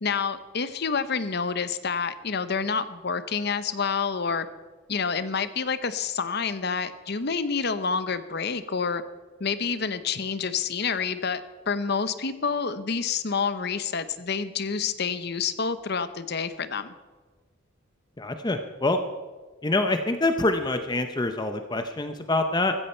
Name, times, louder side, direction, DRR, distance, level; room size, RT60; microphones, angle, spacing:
voice 1, 0.0-4.5 4.9-9.0 9.4-11.4 11.7-16.9, left 5 dB, 55° left, 13 dB, 0.9 m, -28 dB
voice 2, 18.2-19.0 19.6-22.8, left 2 dB, 20° left, 7 dB, 0.8 m, -25 dB
15.5 x 14.5 x 4.5 m, 1.4 s
head